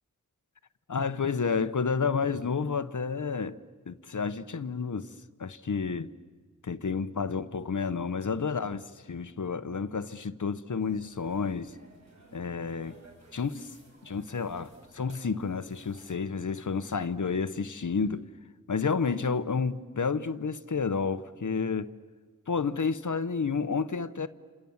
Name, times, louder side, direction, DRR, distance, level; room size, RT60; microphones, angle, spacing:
voice 1, 0.9-3.6 3.9-5.1 5.4-6.1 6.6-11.7 12.3-13.0 13.3-13.7 14.0-18.3 18.7-21.9 22.5-24.3, left 5 dB, 65° left, 0.9 m, -30 dB
sound 1, 10.8-16.1, right 2 dB, 55° right, 6.2 m, -56 dB
29.5 x 27.5 x 7.2 m
wide cardioid pair, 75°, 32 cm